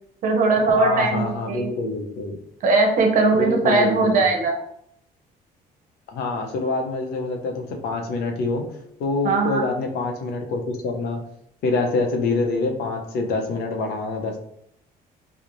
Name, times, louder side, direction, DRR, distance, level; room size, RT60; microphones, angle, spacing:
voice 1, 0.2-1.7 2.6-4.6 9.2-9.7, right 3 dB, 55° right, 2 dB, 0.6 m, -19 dB
voice 2, 0.8-2.4 3.3-4.2 6.1-8.6 9.0-11.2 11.6-14.4, left 3 dB, 75° left, 3 dB, 0.6 m, -26 dB
2.9 x 2.0 x 2.5 m, 0.73 s
cardioid pair, 140°, 17 cm